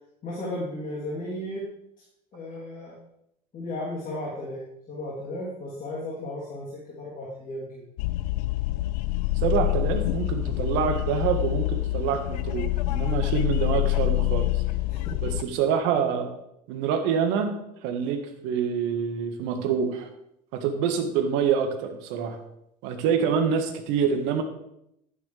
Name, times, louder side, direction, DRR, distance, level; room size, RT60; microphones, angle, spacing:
voice 1, 0.2-1.7 2.3-2.9 3.5-7.8 14.9-15.3, left 1 dB, 40° left, -6 dB, 3.3 m, -35 dB
sound 1, 8.0-15.4, left 18 dB, 70° left, 0.5 m, -26 dB
voice 2, 9.4-14.5 15.2-16.3 16.7-17.5 17.8-20.1 20.5-22.4 22.8-24.4, right 7 dB, 65° right, 6 dB, 1.6 m, -26 dB
11.5 x 9.6 x 3.4 m, 0.78 s
hypercardioid pair, 70°, 21 cm